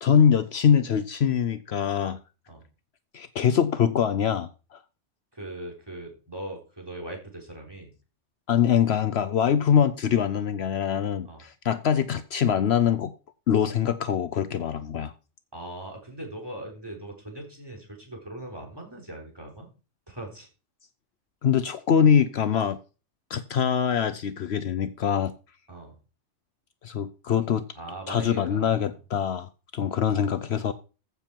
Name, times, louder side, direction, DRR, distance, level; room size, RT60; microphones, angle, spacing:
voice 1, 0.0-2.2 3.1-4.8 8.5-13.1 13.5-15.1 21.4-22.8 23.3-25.3 26.8-27.7 28.1-30.7, left 8 dB, 65° left, 0.9 m, -23 dB
voice 2, 5.3-7.9 9.4-9.5 11.2-11.4 15.5-19.7 20.1-20.5 25.7-26.0 27.8-29.0, right 1 dB, 20° right, 3.8 m, -40 dB
15.0 x 7.0 x 4.5 m
omnidirectional pair, 1.2 m